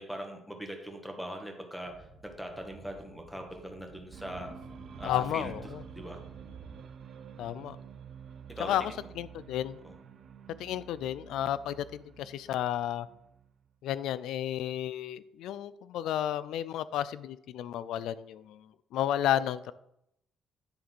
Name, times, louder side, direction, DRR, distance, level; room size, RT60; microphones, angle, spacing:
voice 1, 0.0-4.5 5.0-5.5 6.0-6.2 8.6-8.7 9.8-9.9, equal, ahead, 3 dB, 1.7 m, -41 dB
Speech / Wind, 1.8-6.7, right 4 dB, 75° right, 1.2 m, -51 dB
sound 1, 4.1-13.7, right 8 dB, 60° right, 0.7 m, -49 dB
voice 2, 5.0-5.8 7.4-7.8 8.6-9.8 10.6-13.1 13.8-18.6 18.9-19.7, left 11 dB, 85° left, 16 dB, 0.4 m, -32 dB
9.7 x 3.7 x 6.1 m, 0.79 s
cardioid pair, 90°, 0 cm